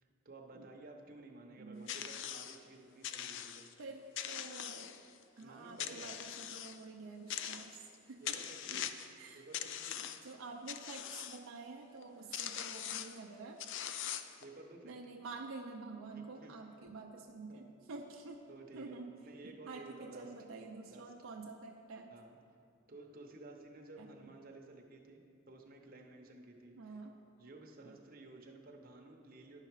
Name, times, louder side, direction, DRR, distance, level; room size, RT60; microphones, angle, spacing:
voice 1, 0.0-3.7 5.4-6.1 8.2-8.9 9.3-10.0 14.4-15.0 16.1-16.5 18.5-20.3 20.9-21.1 22.1-22.4 22.9-27.0 27.4-29.6, right 2 dB, 45° right, 1 dB, 0.8 m, -54 dB
voice 2, 1.6-2.0 3.8-5.0 5.4-8.3 8.7-8.8 9.2-9.4 10.2-13.6 14.8-18.4 18.7-19.2 19.4-22.1 24.0-24.3 26.8-27.2 27.8-28.0, right 3 dB, 75° right, 1 dB, 0.5 m, -49 dB
sound 1, 1.9-2.6 3.0-3.7 4.2-5.2 5.8-6.8 7.3-7.9 8.3-9.1 9.5-10.3 10.7-11.4 12.0-12.1 12.3-13.2 13.6-14.4, left 9 dB, 60° left, 0.4 m, -42 dB
10.5 x 5.7 x 4.7 m, 2.6 s
head